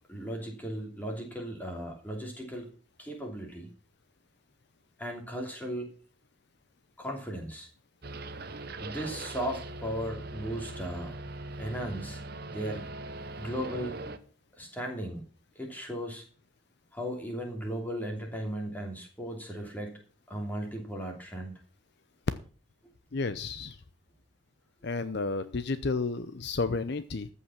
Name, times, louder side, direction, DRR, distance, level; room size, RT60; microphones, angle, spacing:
voice 1, 0.1-2.7 3.0-3.7 5.0-5.9 7.0-7.7 8.8-11.2 11.6-12.2 12.5-12.9 13.4-14.0 14.6-15.2 15.5-16.3 16.9-20.0 20.3-21.6, equal, 10° left, 1 dB, 2.9 m, -36 dB
sound 1, 8.0-14.2, right 2 dB, 50° right, 1.0 m, -40 dB
voice 2, 23.1-23.8 24.8-27.3, left 3 dB, 50° left, 12 dB, 0.6 m, -31 dB
14.0 x 5.6 x 7.2 m, 0.41 s
head